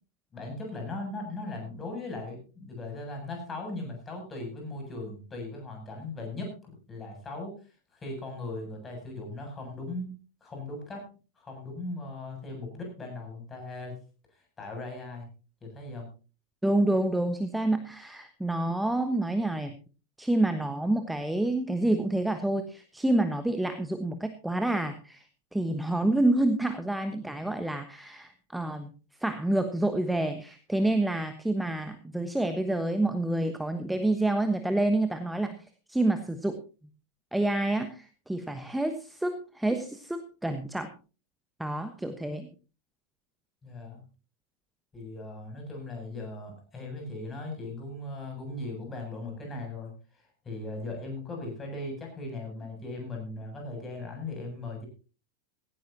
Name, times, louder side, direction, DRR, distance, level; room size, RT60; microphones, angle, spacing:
voice 1, 0.3-7.6 7.9-10.1 10.4-11.1 11.3-14.0 14.3-15.3 15.6-16.1 43.6-44.0 44.9-54.9, left 2 dB, 20° left, 2 dB, 7.7 m, -38 dB
voice 2, 16.6-19.7 20.2-25.3 25.5-28.9 29.2-35.6 35.9-36.6 37.3-40.9 41.6-42.5, right 1 dB, 5° right, 9 dB, 1.2 m, -28 dB
17.0 x 16.5 x 2.8 m, 0.34 s
figure-of-eight pair, 90°, 0 cm